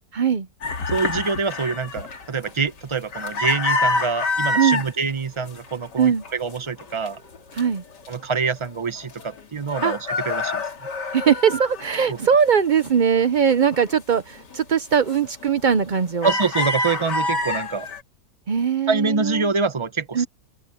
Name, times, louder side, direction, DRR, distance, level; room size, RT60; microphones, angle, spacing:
voice 1, 0.1-0.5 4.6-4.8 6.0-6.2 7.6-7.8 9.8-9.9 11.1-16.3 18.5-19.5 20.1-20.2, right 7 dB, 85° right, 0.4 m, -20 dB
sound 1, 0.6-4.9 5.4-5.9 6.2-7.6 8.1-8.2 8.4-9.4 9.7-12.5 12.8-13.9 14.4-14.6 15.1-15.5 15.8-18.0, left 2 dB, 75° left, 3.0 m, -27 dB
voice 2, 0.9-7.2 8.1-10.6 12.1-12.2 16.2-17.9 18.9-20.3, right 4 dB, 30° right, 0.6 m, -25 dB
open air
omnidirectional pair, 1.9 m